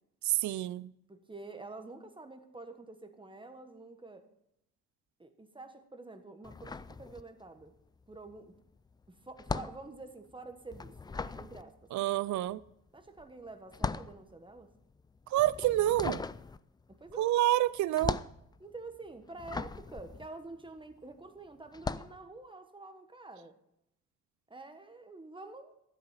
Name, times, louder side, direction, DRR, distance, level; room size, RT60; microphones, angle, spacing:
voice 1, 0.2-0.9 11.9-12.6 15.3-16.2 17.2-18.2, right 14 dB, 70° right, 0.5 m, -28 dB
voice 2, 1.1-4.2 5.2-7.7 8.1-8.6 9.1-11.9 12.9-14.7 16.9-17.4 18.6-23.6 24.5-25.7, right 3 dB, 15° right, 1.4 m, -48 dB
sound 1, 6.4-7.7 7.9-21.1 21.7-22.2, left 4 dB, 15° left, 0.3 m, -39 dB
13.0 x 8.0 x 5.7 m
cardioid pair, 90°, 30 cm